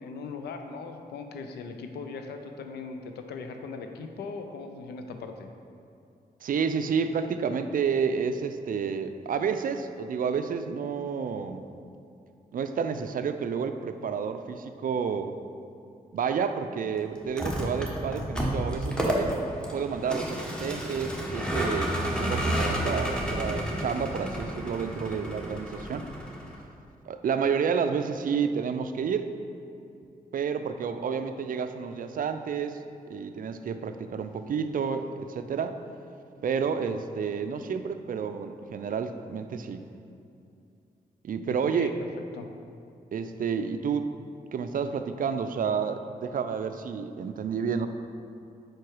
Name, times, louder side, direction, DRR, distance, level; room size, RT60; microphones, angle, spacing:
voice 1, 0.0-5.5 41.5-41.9 42.3-42.5, left 4 dB, 90° left, 5 dB, 0.5 m, -39 dB
voice 2, 6.4-11.7 12.5-15.4 16.1-19.4 19.7-26.1 27.1-29.3 30.3-32.8 33.1-35.8 36.4-39.9 41.2-42.0 43.1-44.1 44.5-47.9, right 6 dB, 55° right, 9 dB, 0.4 m, -30 dB
Vehicle, 17.2-26.6, equal, 5° left, 1.1 m, -31 dB
4.6 x 4.5 x 4.7 m, 2.5 s
supercardioid pair, 50°, 17 cm